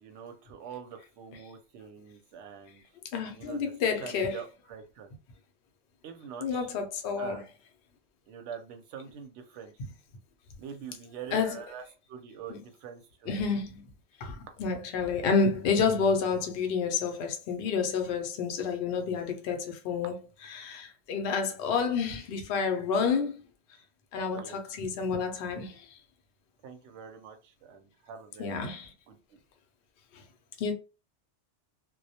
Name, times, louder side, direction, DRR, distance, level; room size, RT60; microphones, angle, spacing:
voice 1, 0.0-2.8 3.3-3.7 4.0-5.1 6.0-6.7 7.2-7.5 8.3-9.7 10.6-11.8 12.1-13.4 24.3-24.6 26.6-28.8 29.1-29.4, right 7 dB, 70° right, 0.8 m, -45 dB
voice 2, 3.1-4.4 6.4-7.4 11.3-11.6 12.5-12.6 13.3-13.8 14.2-20.2 20.5-23.4 24.1-24.4 24.8-25.8 28.4-28.9 30.6-30.7, left 5 dB, 60° left, 0.7 m, -29 dB
2.2 x 2.1 x 2.7 m
omnidirectional pair, 1.3 m